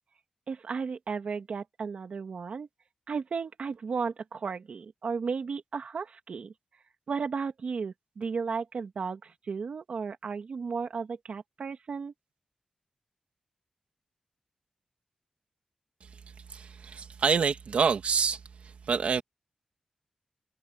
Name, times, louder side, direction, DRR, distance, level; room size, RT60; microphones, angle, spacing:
voice 1, 0.5-2.7 3.1-6.5 7.1-12.1, right 5 dB, 70° right, 2.2 m, -34 dB
voice 2, 16.5-18.4 18.9-19.2, right 6 dB, 90° right, 2.2 m, -26 dB
wide cardioid pair, 140°, 2 cm